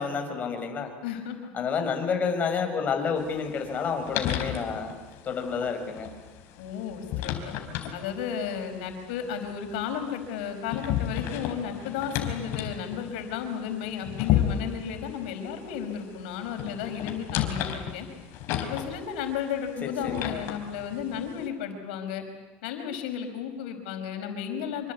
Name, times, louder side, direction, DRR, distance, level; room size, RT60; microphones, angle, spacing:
voice 1, 0.0-0.9 1.5-4.9 5.2-6.1 19.8-20.3, left 6 dB, 35° left, 5 dB, 5.6 m, -29 dB
voice 2, 1.0-1.4 6.6-7.5 7.9-18.1 18.6-22.2 22.6-24.9, left 8 dB, 90° left, 6 dB, 5.4 m, -33 dB
sound 1, 3.2-21.5, left 11 dB, 60° left, 4.3 m, -34 dB
26.5 x 24.5 x 8.4 m, 1.1 s
supercardioid pair, 130°, 5 cm